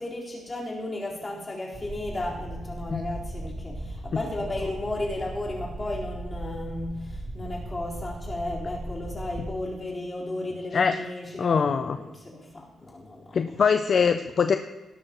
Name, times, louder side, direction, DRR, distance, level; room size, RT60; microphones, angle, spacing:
voice 1, 0.0-13.6, left 2 dB, 25° left, -5 dB, 4.3 m, -34 dB
sound 1, 1.7-9.5, right 1 dB, 25° right, 3.8 m, -37 dB
voice 2, 11.4-12.0 13.3-14.6, left 6 dB, 50° left, 8 dB, 0.5 m, -22 dB
17.5 x 13.0 x 3.1 m, 1.1 s
cardioid pair, 110°, 0 cm